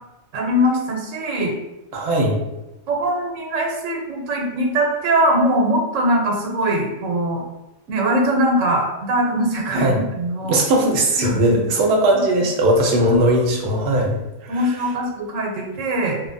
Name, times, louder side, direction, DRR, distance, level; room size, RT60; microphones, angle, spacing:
voice 1, 0.3-1.5 2.9-7.4 7.9-10.6 11.2-11.6 13.0-13.1 14.5-16.2, right 1 dB, 85° right, 1 dB, 1.0 m, -21 dB
voice 2, 1.9-2.4 9.7-10.0 10.5-14.7, right 1 dB, 65° right, 0 dB, 0.8 m, -19 dB
3.0 x 2.1 x 2.5 m, 1.0 s
omnidirectional pair, 1.3 m